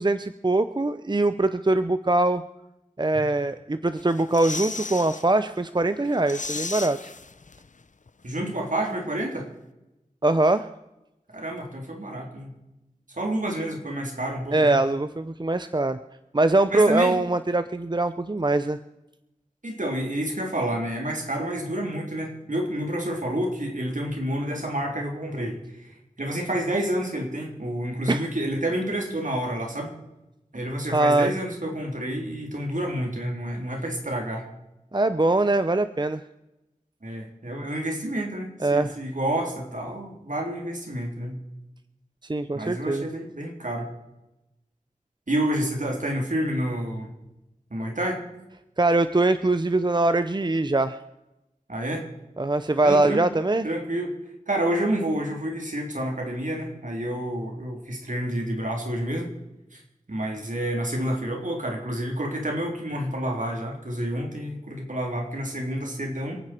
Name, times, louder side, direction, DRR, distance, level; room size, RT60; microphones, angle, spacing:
voice 1, 0.0-2.4 3.0-7.1 10.2-10.7 14.5-16.0 16.3-18.8 28.1-28.3 30.9-31.3 34.9-36.2 38.6-38.9 42.2-43.1 48.8-51.0 52.4-53.7, right 2 dB, 30° right, 11 dB, 0.7 m, -22 dB
sound 1, 4.0-5.3 5.6-5.7 6.0-7.8 8.1-8.2, left 4 dB, 65° left, 0.6 m, -35 dB
voice 2, 8.2-9.5 11.3-12.5 13.2-14.8 16.7-17.2 19.6-29.9 30.5-34.4 37.0-41.4 42.5-43.9 45.3-47.1 47.7-48.2 51.7-52.1 52.8-53.2 53.6-54.2 54.5-59.3 59.7-59.8 60.1-66.4, right 1 dB, 65° right, 1 dB, 3.6 m, -29 dB
27.5 x 9.5 x 4.5 m, 0.95 s
wide cardioid pair, 45°, 14 cm